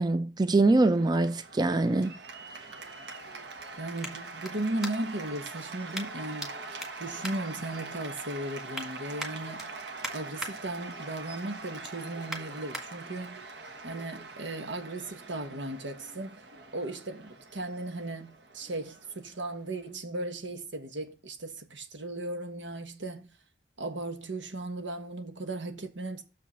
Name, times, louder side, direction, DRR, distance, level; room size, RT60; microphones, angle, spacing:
voice 1, 0.0-2.1, right 2 dB, 25° right, 0.4 m, -24 dB
Cheering / Applause, 0.7-19.9, right 3 dB, 65° right, 1.2 m, -44 dB
sound 1, 2.4-5.3 5.9-6.5 6.8-8.1 8.5-8.9 9.2-10.5 10.9-11.2 11.5-12.8 13.4-13.5, equal, ahead, 1.8 m, -41 dB
voice 2, 3.8-6.5 7.0-9.7 10.1-13.4 13.8-16.4 16.7-23.3 23.8-26.2, right 2 dB, 90° right, 1.4 m, -36 dB
6.7 x 5.3 x 5.6 m
head